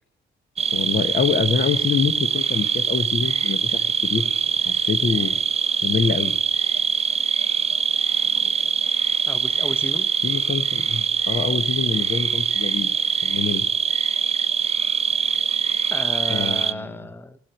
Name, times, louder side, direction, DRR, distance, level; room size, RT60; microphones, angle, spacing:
sound 1, 0.6-16.7, right 6 dB, 30° right, 0.6 m, -23 dB
voice 1, 0.7-4.3 4.6-5.4 5.8-6.3 10.2-12.9 13.2-13.6 16.3-17.0, left 5 dB, 50° left, 12 dB, 1.4 m, -25 dB
voice 2, 9.3-10.1 15.9-17.4, left 1 dB, 10° left, 13 dB, 0.9 m, -33 dB
15.5 x 7.5 x 9.7 m, 0.62 s
cardioid pair, 90°, 20 cm